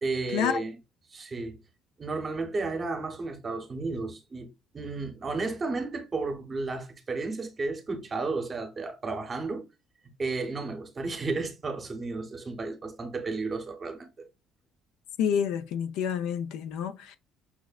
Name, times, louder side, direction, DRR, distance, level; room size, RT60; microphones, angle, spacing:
voice 1, 0.0-0.8 1.1-1.6 2.0-4.5 4.7-9.6 10.2-14.3, right 3 dB, 30° right, 0.8 m, -33 dB
voice 2, 15.2-17.2, left 8 dB, 80° left, 0.4 m, -28 dB
5.9 x 2.1 x 2.3 m
cardioid pair, 115°, 0 cm